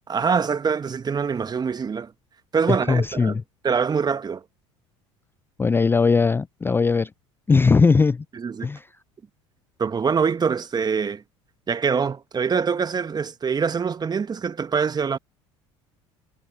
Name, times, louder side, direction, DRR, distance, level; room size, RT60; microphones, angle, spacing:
voice 1, 0.1-2.1 2.5-3.4 3.6-4.4 8.3-8.7 9.8-11.2 11.7-15.2, right 6 dB, 25° right, 1.5 m, -24 dB
voice 2, 2.7-3.4 5.6-7.1 7.5-8.2 8.6-8.9, left 4 dB, 15° left, 0.4 m, -19 dB
hypercardioid pair, 70°, 16 cm